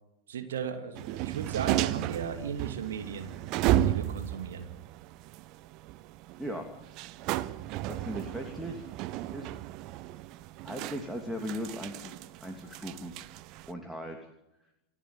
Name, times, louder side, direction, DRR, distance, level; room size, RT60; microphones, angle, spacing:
voice 1, 0.3-3.3 3.8-4.7, right 7 dB, 60° right, 6 dB, 2.6 m, -36 dB
sound 1, 0.9-13.7, right 14 dB, 40° right, 1.0 m, -34 dB
voice 2, 6.4-6.7 7.9-8.9 9.3-9.5 10.6-12.1 12.4-13.1 13.7-14.2, equal, ahead, 2 dB, 3.0 m, -38 dB
30.0 x 11.5 x 9.7 m, 0.90 s
figure-of-eight pair, 90°, 0 cm